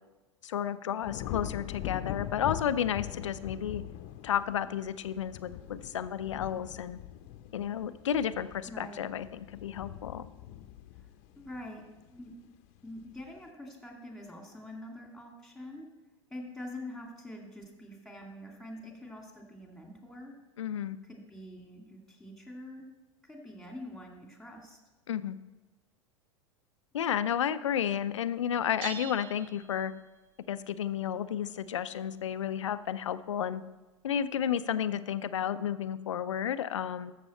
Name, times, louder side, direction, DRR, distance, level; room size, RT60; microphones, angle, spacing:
voice 1, 0.4-3.8 4.2-7.0 7.5-10.3 20.6-21.0 25.1-25.4 26.9-29.9 30.5-33.6 34.0-37.1, left 9 dB, 80° left, 14 dB, 0.5 m, -32 dB
sound 1, 1.0-12.3 12.8-13.2, left 12 dB, 50° left, 0.8 m, -42 dB
voice 2, 8.7-9.0 10.9-11.1 11.4-11.8 12.1-12.3 12.8-15.9 16.3-20.3 21.0-22.9 23.3-24.8, left 1 dB, ahead, 1 dB, 2.4 m, -45 dB
sound 2, 28.8-30.4, right 10 dB, 50° right, 0.9 m, -44 dB
14.0 x 6.8 x 4.3 m, 1.1 s
hypercardioid pair, 90°, 16 cm